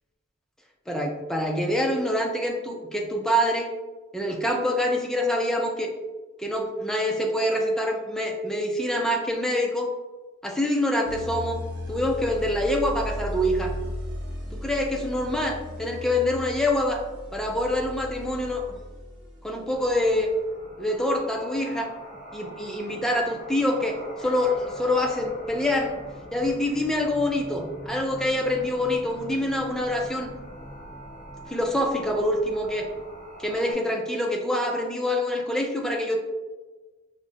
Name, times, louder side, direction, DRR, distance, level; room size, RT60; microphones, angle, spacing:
voice 1, 0.9-3.7 4.1-5.9 6.4-9.9 10.4-11.6 11.9-13.7 14.5-17.0 17.3-18.6 19.4-20.3 20.8-21.9 22.3-25.9 26.3-30.3 31.5-32.9 33.4-36.2, left 1 dB, 5° left, 1 dB, 0.3 m, -25 dB
sound 1, 11.0-20.2, left 1 dB, 55° right, 0.8 m, -36 dB
sound 2, 19.7-33.7, equal, 35° left, 0.7 m, -42 dB
5.0 x 2.0 x 2.5 m, 1.2 s
head